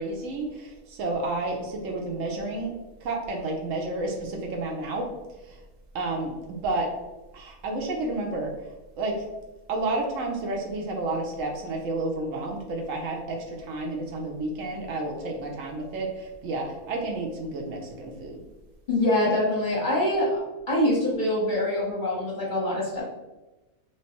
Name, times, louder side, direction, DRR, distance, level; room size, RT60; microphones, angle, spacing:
voice 1, 0.0-2.7 3.0-5.1 5.5-5.6 5.9-6.9 7.3-8.6 9.0-9.3 9.7-18.4, right 2 dB, 65° right, 1 dB, 0.9 m, -31 dB
voice 2, 18.9-20.4 20.7-23.0, left 1 dB, 40° left, -6 dB, 0.9 m, -24 dB
3.2 x 3.0 x 2.9 m, 1.1 s
omnidirectional pair, 1.6 m